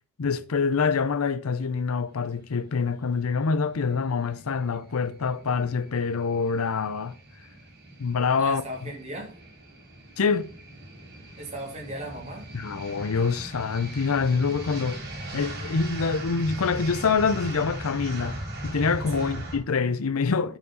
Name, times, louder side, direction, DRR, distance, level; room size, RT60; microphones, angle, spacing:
voice 1, 0.2-7.2 8.0-8.6 10.2-10.5 12.5-15.1 15.3-20.6, left 5 dB, 90° left, 0.6 m, -26 dB
sound 1, 3.8-19.6, right 1 dB, 50° right, 4.0 m, -39 dB
voice 2, 8.4-9.4 11.4-12.5 19.1-19.3, right 1 dB, 30° right, 3.0 m, -37 dB
9.4 x 5.9 x 5.5 m
head